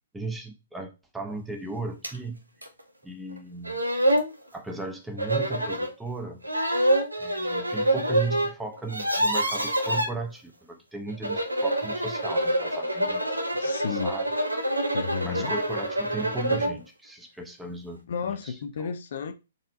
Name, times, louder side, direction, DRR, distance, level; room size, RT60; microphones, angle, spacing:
voice 1, 0.1-2.4 3.0-3.8 4.5-6.4 7.2-13.5 13.8-14.3 15.2-18.9, right 3 dB, 5° right, 0.7 m, -36 dB
sound 1, 2.0-2.2 2.6-2.7 3.4-3.5 3.6-4.3 5.2-5.9 6.4-8.5 8.8-10.1 11.1-16.8, right 1 dB, 85° right, 0.7 m, -26 dB
voice 2, 13.5-14.1 14.9-15.5 18.1-19.3, left 6 dB, 55° left, 0.5 m, -32 dB
4.1 x 3.6 x 2.7 m
figure-of-eight pair, 120°, 0 cm